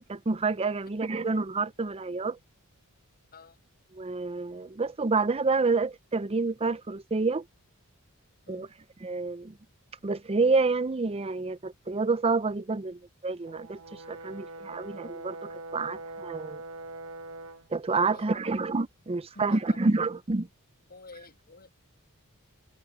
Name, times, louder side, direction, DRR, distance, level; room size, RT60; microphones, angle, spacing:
voice 1, 0.0-2.4 3.9-7.4 8.5-8.7 9.0-9.5 10.0-16.6 17.7-20.5, right 3 dB, 25° right, 0.5 m, -28 dB
Brass instrument, 13.5-17.7, right 2 dB, 65° right, 1.1 m, -42 dB
voice 2, 18.1-18.5 19.3-19.8 20.9-21.7, left 3 dB, 45° left, 5.9 m, -49 dB
head